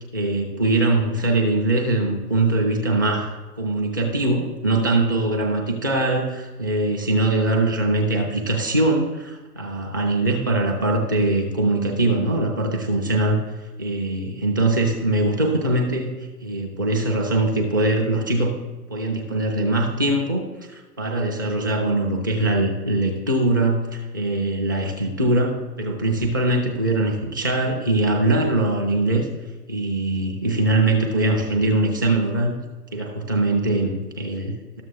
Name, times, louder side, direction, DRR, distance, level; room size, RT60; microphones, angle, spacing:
voice 1, 0.1-13.4 13.8-16.1 16.4-18.6 18.9-29.3 29.7-32.6 32.9-34.8, right 2 dB, 15° right, -1 dB, 0.4 m, -22 dB
13.0 x 7.3 x 2.3 m, 1.3 s
figure-of-eight pair, 120°, 47 cm